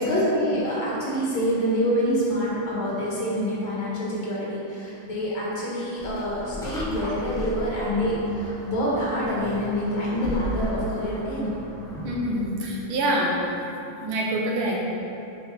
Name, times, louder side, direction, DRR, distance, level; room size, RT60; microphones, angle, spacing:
voice 1, 0.0-11.5, equal, 75° left, -6 dB, 2.6 m, -26 dB
sound 1, 6.0-12.3, equal, ahead, 1.2 m, -35 dB
voice 2, 12.0-13.3 14.0-14.8, right 1 dB, 80° right, -2 dB, 1.9 m, -25 dB
7.0 x 4.2 x 6.0 m, 2.8 s
omnidirectional pair, 2.2 m